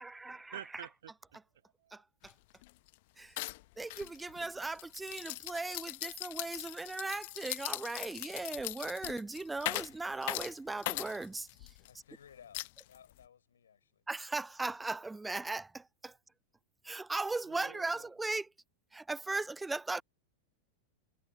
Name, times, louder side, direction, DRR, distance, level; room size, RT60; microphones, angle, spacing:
voice 1, 0.0-0.5 1.9-2.3 3.2-3.4 3.8-11.7 14.1-16.1 16.8-18.5 18.9-20.0, right 3 dB, 10° right, 0.3 m, -38 dB
voice 2, 0.5-2.0 17.4-18.1, right 10 dB, 60° right, 2.7 m, -50 dB
sound 1, 2.2-2.3 2.6-2.9 3.4-11.9 12.5-13.2, left 22 dB, 50° left, 0.8 m, -40 dB
voice 3, 11.8-14.0, left 8 dB, 65° left, 4.1 m, -58 dB
figure-of-eight pair, 90°, 0 cm